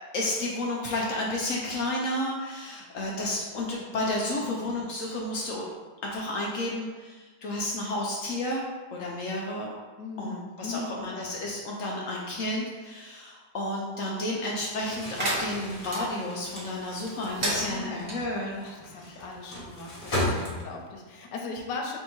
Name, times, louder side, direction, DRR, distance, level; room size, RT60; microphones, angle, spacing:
voice 1, 0.1-5.7 6.0-8.6 8.9-9.7 10.2-18.6 19.0-19.1, left 1 dB, 70° left, -3 dB, 0.8 m, -31 dB
voice 2, 4.3-4.7 10.0-11.0 17.5-18.1 18.6-22.0, left 3 dB, 90° left, 1 dB, 1.3 m, -39 dB
Crumpling crinkling, 14.8-21.0, left 1 dB, 30° left, 1.1 m, -35 dB
sound 1, 15.2-16.0 17.3-18.2, right 1 dB, 50° right, 0.6 m, -31 dB
3.5 x 2.7 x 4.4 m, 1.3 s
omnidirectional pair, 1.8 m